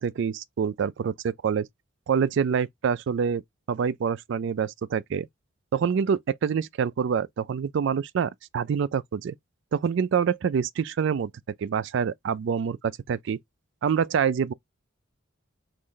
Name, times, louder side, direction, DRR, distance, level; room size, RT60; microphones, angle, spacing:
voice 1, 0.0-1.7 2.1-3.4 3.7-5.3 5.7-9.3 9.7-11.3 11.6-13.4 13.8-14.5, right 7 dB, 60° right, 0.3 m, -26 dB
3.1 x 2.5 x 3.8 m
head